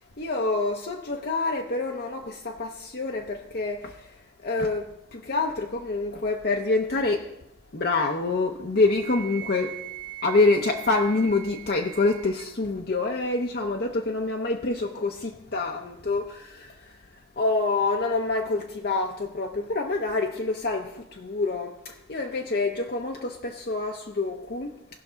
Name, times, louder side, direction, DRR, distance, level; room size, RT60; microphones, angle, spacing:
voice 1, 0.2-3.9 4.4-4.9 5.1-7.2 7.7-9.7 10.2-16.7 17.4-20.9 21.2-24.7, left 3 dB, 55° left, 0.7 m, -26 dB
Wind instrument woodwind instrument, 8.8-12.5, right 15 dB, 75° right, 0.7 m, -40 dB
17.5 x 6.0 x 3.9 m
head